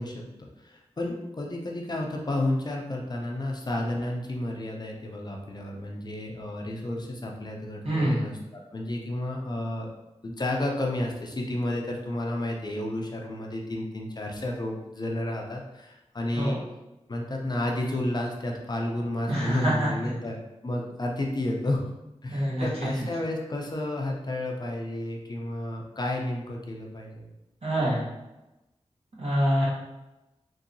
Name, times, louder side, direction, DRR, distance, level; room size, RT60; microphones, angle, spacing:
voice 1, 0.0-9.9 10.2-16.6 17.1-21.8 22.2-27.3, left 1 dB, 40° left, 0 dB, 0.5 m, -31 dB
voice 2, 7.8-8.2 16.4-16.6 19.3-20.1 22.3-22.9 27.6-28.0 29.2-29.6, equal, 65° right, -7 dB, 1.3 m, -25 dB
3.0 x 2.7 x 2.6 m, 0.97 s
wide cardioid pair, 95°, 11 cm